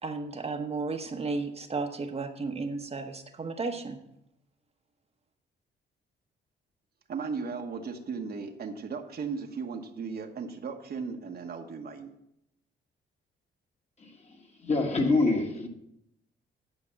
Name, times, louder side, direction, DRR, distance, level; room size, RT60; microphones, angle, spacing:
voice 1, 0.0-4.0, right 3 dB, 30° right, 1.0 m, -33 dB
voice 2, 7.1-12.1, right 5 dB, 50° right, 1.2 m, -36 dB
voice 3, 14.6-15.7, left 3 dB, 35° left, 1.8 m, -25 dB
10.0 x 5.2 x 7.1 m
cardioid pair, 90°, 20 cm